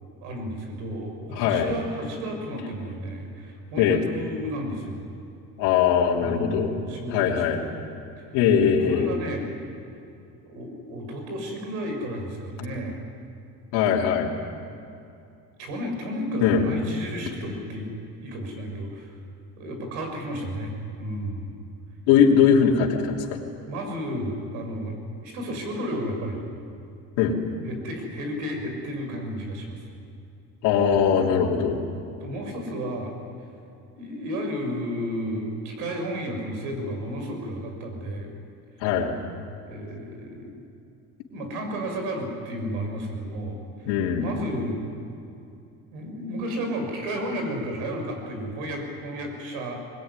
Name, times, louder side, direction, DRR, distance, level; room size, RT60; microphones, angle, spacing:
voice 1, 0.2-5.0 6.2-7.7 8.6-9.4 10.4-13.0 15.6-17.9 18.2-19.2 19.6-20.7 21.0-21.6 23.7-26.4 27.6-29.9 31.2-31.7 32.2-33.1 34.0-38.3 39.7-40.6 41.3-43.9 44.2-44.8 45.9-49.8, equal, 80° right, 3 dB, 6.6 m, -32 dB
voice 2, 1.3-1.8 3.8-4.0 5.6-6.7 7.1-7.6 8.3-9.1 13.7-14.3 16.4-16.7 22.1-23.4 27.2-27.4 30.6-31.8 38.8-39.1 43.9-44.3, left 7 dB, 90° left, -2 dB, 3.2 m, -21 dB
23.0 x 20.5 x 9.8 m, 2.6 s
cardioid pair, 165°, 32 cm